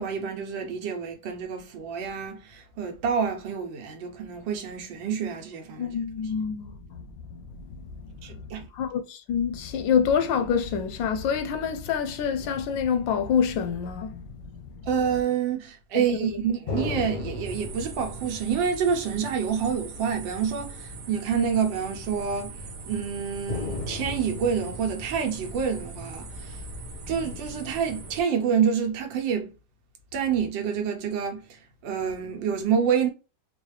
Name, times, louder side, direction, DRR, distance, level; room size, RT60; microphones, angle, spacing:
voice 1, 0.0-5.9 8.2-8.7 14.9-22.5 22.9-26.6 27.1-29.5 30.1-31.4 31.8-33.1, right 7 dB, 90° right, 1.5 m, -27 dB
voice 2, 5.8-7.1 7.3-7.4 8.7-14.2 15.1-15.2 15.9-16.4 27.1-27.3, left 7 dB, 90° left, 1.4 m, -27 dB
sound 1, 12.4-14.3 16.7-20.4 20.7-20.8 23.5-27.2, left 3 dB, 50° left, 0.5 m, -38 dB
sound 2, 17.4-28.2, right 2 dB, 65° right, 1.4 m, -41 dB
4.5 x 2.4 x 3.2 m
omnidirectional pair, 2.0 m